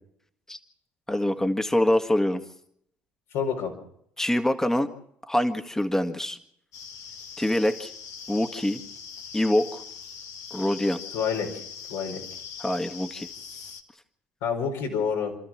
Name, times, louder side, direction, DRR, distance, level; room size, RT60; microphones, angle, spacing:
voice 1, 1.1-2.4 4.2-4.9 5.3-6.4 7.4-7.9 8.3-8.8 9.3-9.8 10.5-11.0 12.6-13.3, left 1 dB, 10° left, 8 dB, 1.7 m, -25 dB
voice 2, 3.3-3.7 11.1-11.6 11.9-12.2 14.4-15.3, left 6 dB, 80° left, 1 dB, 4.7 m, -28 dB
sound 1, 6.7-13.8, left 7 dB, 65° left, 1.8 m, -41 dB
29.0 x 13.5 x 7.4 m, 0.71 s
hypercardioid pair, 65°, 6 cm